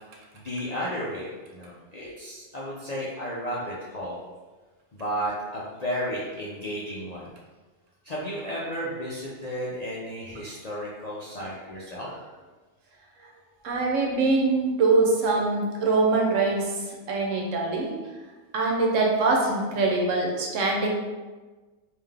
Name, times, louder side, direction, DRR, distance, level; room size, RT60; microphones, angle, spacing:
voice 1, 0.3-4.2 4.9-7.3 8.0-12.1, equal, 50° left, -7 dB, 0.4 m, -33 dB
voice 2, 13.6-16.8 17.1-18.0 18.5-20.9, right 3 dB, 75° right, -1 dB, 1.1 m, -23 dB
3.7 x 2.6 x 3.4 m, 1.3 s
omnidirectional pair, 1.4 m